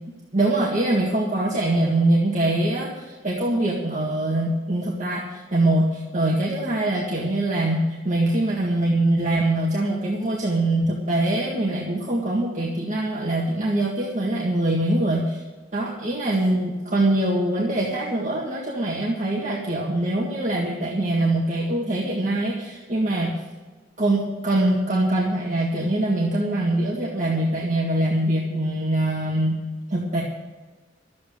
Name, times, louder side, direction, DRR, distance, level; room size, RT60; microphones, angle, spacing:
voice 1, 0.3-15.4 15.7-23.3 24.0-29.6 29.9-30.2, right 1 dB, 40° right, -3 dB, 1.8 m, -23 dB
13.0 x 8.5 x 7.8 m, 1.3 s
head